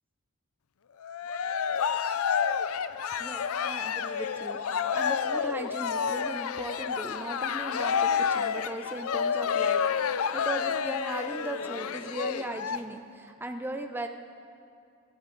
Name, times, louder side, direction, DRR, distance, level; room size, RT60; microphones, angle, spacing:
Cheering, 1.0-12.8, left 7 dB, 85° left, 0.5 m, -29 dB
voice 1, 3.2-14.1, right 1 dB, 10° right, 5 dB, 0.6 m, -38 dB
22.0 x 12.5 x 3.9 m, 2.4 s
head